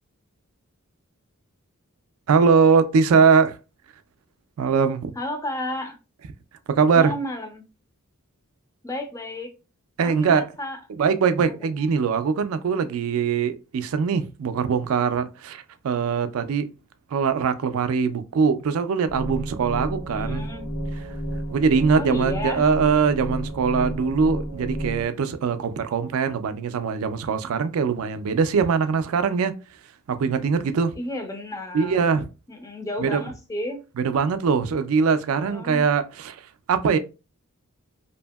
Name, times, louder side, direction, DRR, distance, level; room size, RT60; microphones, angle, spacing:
voice 1, 2.3-3.6 4.6-5.1 6.7-7.1 10.0-10.4 11.0-16.7 17.1-20.4 21.5-29.6 30.1-31.0 31.7-32.3 33.0-33.2 34.0-36.4 36.7-37.0, right 5 dB, 70° right, 0.3 m, -22 dB
voice 2, 5.2-6.0 6.9-7.7 8.8-9.5 10.0-10.8 20.1-20.7 22.0-22.6 31.0-32.0 32.5-33.8 35.4-35.9, left 1 dB, 15° left, 0.4 m, -32 dB
sound 1, 19.1-25.1, equal, 75° left, 0.7 m, -31 dB
2.7 x 2.6 x 2.2 m
head